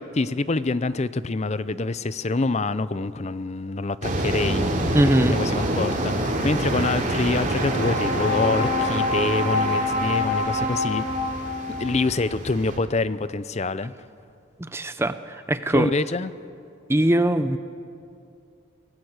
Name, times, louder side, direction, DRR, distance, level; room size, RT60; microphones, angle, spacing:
voice 1, 0.1-4.7 5.2-11.1 11.8-13.9 15.7-16.3, left 3 dB, 30° left, 15 dB, 0.5 m, -26 dB
sound 1, 4.0-12.8, right 1 dB, 40° right, 3.2 m, -27 dB
voice 2, 4.9-5.3 14.6-15.9 16.9-17.6, right 1 dB, 10° right, 11 dB, 0.6 m, -21 dB
Brass instrument, 7.5-11.9, left 2 dB, 55° left, 5.2 m, -26 dB
23.0 x 18.0 x 8.0 m, 2.4 s
head